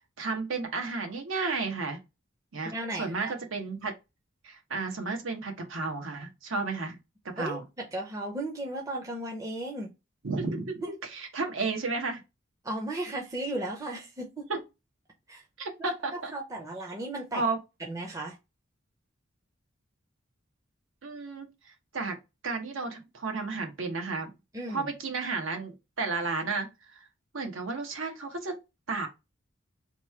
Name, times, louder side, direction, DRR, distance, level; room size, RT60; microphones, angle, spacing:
voice 1, 0.2-2.0 2.5-2.7 3.0-3.9 4.4-7.0 7.3-7.6 10.2-12.2 15.6-16.3 17.3-17.6 21.0-21.5 21.9-22.2 22.4-24.3 24.7-27.0 27.3-28.6 28.9-29.1, right 3 dB, 80° right, 0.9 m, -32 dB
voice 2, 2.6-3.3 7.4-9.9 10.8-10.9 12.6-14.5 15.3-15.4 16.3-17.4 17.8-18.4 24.5-24.9, right 1 dB, 15° right, 0.5 m, -35 dB
3.0 x 2.3 x 4.2 m
head